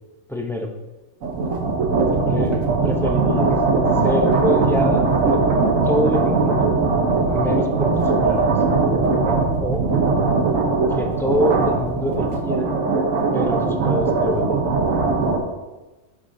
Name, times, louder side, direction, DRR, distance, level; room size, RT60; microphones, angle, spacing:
voice 1, 0.3-0.7 2.1-3.5 4.0-5.4 5.9-6.7 7.3-8.6 9.6-9.9 10.9-12.7 13.3-14.7, left 1 dB, 5° left, 2 dB, 0.4 m, -26 dB
sound 1, 1.2-15.4, right 3 dB, 80° right, 1.4 m, -20 dB
10.5 x 6.3 x 2.7 m, 1.1 s
omnidirectional pair, 1.4 m